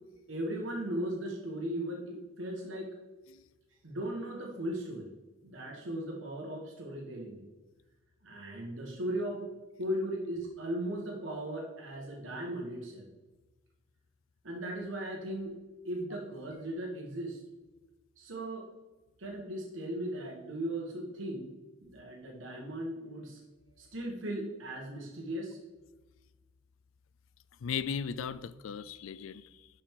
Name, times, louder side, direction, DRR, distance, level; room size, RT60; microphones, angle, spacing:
voice 1, 0.3-2.9 3.8-5.1 5.4-7.4 8.2-9.5 9.8-13.1 14.4-15.5 15.8-17.4 18.2-18.7 19.2-21.5 21.8-23.4 23.8-25.6, right 1 dB, 75° right, 0 dB, 1.3 m, -37 dB
voice 2, 27.6-29.7, left 7 dB, 85° left, 16 dB, 0.4 m, -37 dB
11.5 x 4.5 x 3.6 m, 1.1 s
head